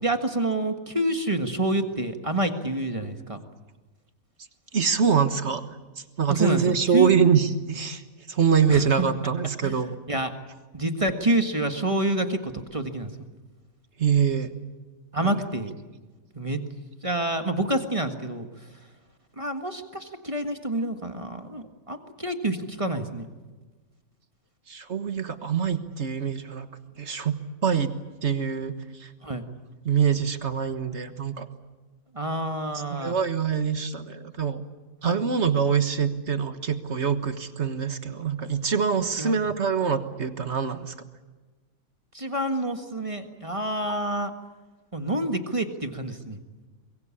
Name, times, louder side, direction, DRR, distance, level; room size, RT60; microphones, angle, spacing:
voice 1, 0.0-3.4 6.3-7.1 8.7-8.9 9.2-9.3 9.6-9.8 10.1-10.3 10.7-13.1 15.1-15.7 16.3-16.6 17.0-18.5 19.4-23.3 29.2-29.5 32.1-33.2 35.0-35.2 39.2-39.3 42.1-44.3 44.9-46.4, right 1 dB, 25° right, 6 dB, 1.7 m, -28 dB
voice 2, 4.7-5.6 6.2-8.0 8.3-10.0 14.0-14.5 15.2-15.3 24.7-26.7 27.0-27.9 28.2-29.1 29.8-31.5 33.0-34.6 35.0-40.9, right 7 dB, 55° right, 9 dB, 1.7 m, -24 dB
24.5 x 22.0 x 8.5 m, 1.3 s
omnidirectional pair, 1.5 m